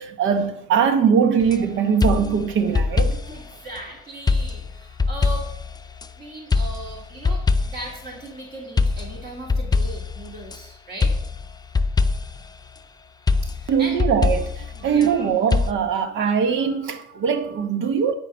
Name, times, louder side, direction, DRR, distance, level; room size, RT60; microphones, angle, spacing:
voice 1, 0.0-3.2 13.7-18.1, right 7 dB, 75° right, 1.0 m, -21 dB
sound 1, 1.4-1.6 2.0-3.5 4.3-6.1 6.5-8.0 8.8-10.6 11.0-12.5 13.3-15.1 15.5-15.7, left 4 dB, 20° left, 0.6 m, -23 dB
voice 2, 3.3-5.5 6.2-11.1 13.6-14.0 14.7-15.3, right 1 dB, 50° right, 2.4 m, -37 dB
11.5 x 4.8 x 6.2 m
cardioid pair, 90°, 20 cm